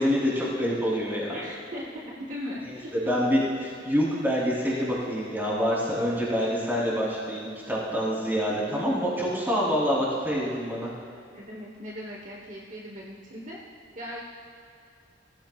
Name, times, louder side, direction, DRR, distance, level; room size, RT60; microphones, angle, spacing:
voice 1, 0.0-1.4 2.9-10.9, equal, 10° right, -6 dB, 3.3 m, -26 dB
voice 2, 1.3-2.9 11.3-13.6 13.9-14.2, equal, 45° right, -2 dB, 1.1 m, -38 dB
18.0 x 14.5 x 2.4 m, 2.5 s
head